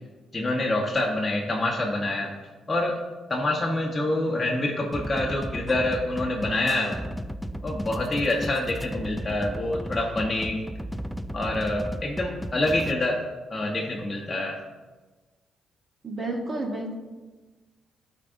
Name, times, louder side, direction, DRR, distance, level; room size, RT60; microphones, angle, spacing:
voice 1, 0.3-2.3 2.7-3.0 3.3-7.0 7.6-10.6 11.3-13.2 13.5-14.6, left 1 dB, 20° left, -2 dB, 0.9 m, -26 dB
sound 1, 4.9-12.9, equal, ahead, 0.3 m, -35 dB
voice 2, 16.0-17.0, right 2 dB, 35° right, 1 dB, 1.0 m, -30 dB
11.5 x 4.5 x 2.6 m, 1.2 s
cardioid pair, 90°, 0 cm